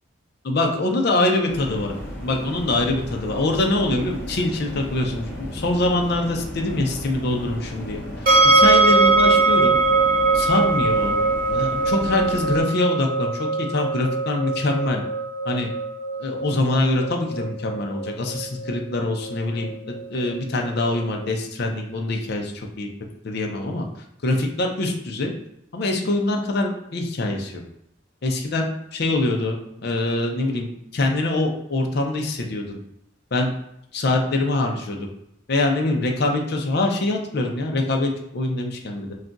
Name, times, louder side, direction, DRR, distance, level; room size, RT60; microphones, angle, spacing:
voice 1, 0.4-1.9 2.2-8.0 8.5-9.8 10.3-11.2 11.5-15.0 15.5-15.7 16.2-22.9 23.2-23.9 24.2-25.3 25.7-27.6 28.2-32.8 33.3-33.5 33.9-35.1 35.5-39.1, left 2 dB, 50° left, 2 dB, 0.5 m, -24 dB
sound 1, 1.5-12.6, equal, 10° left, 0.8 m, -35 dB
sound 2, 8.3-21.2, right 3 dB, 45° right, 0.9 m, -22 dB
2.4 x 2.2 x 3.8 m, 0.79 s
head